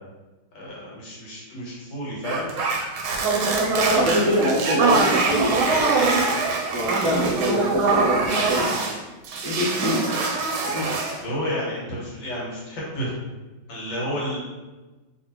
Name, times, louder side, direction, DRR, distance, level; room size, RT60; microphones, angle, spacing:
voice 1, 0.5-2.5 3.7-4.4 11.2-13.1 13.7-14.4, equal, 70° left, -6 dB, 1.8 m, -31 dB
sound 1, 2.2-9.0 9.2-11.2, right 3 dB, 90° right, 1.4 m, -23 dB
voice 2, 3.9-8.7 9.4-10.1 10.7-10.9, equal, 70° right, -7 dB, 0.9 m, -25 dB
3.1 x 3.0 x 2.9 m, 1.2 s
omnidirectional pair, 2.2 m